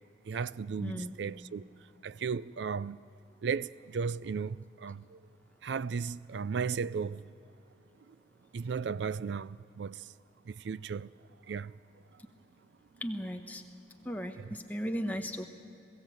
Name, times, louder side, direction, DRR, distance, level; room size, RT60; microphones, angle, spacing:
voice 1, 0.2-1.6 2.0-3.0 3.4-5.2 5.6-7.3 8.1-8.2 8.5-10.1 10.4-11.1 11.5-11.8 14.4-14.5, right 6 dB, 70° right, 0.4 m, -35 dB
voice 2, 0.8-1.2 13.0-13.6 14.0-15.5, equal, 10° left, 1.0 m, -36 dB
21.5 x 16.0 x 7.6 m
head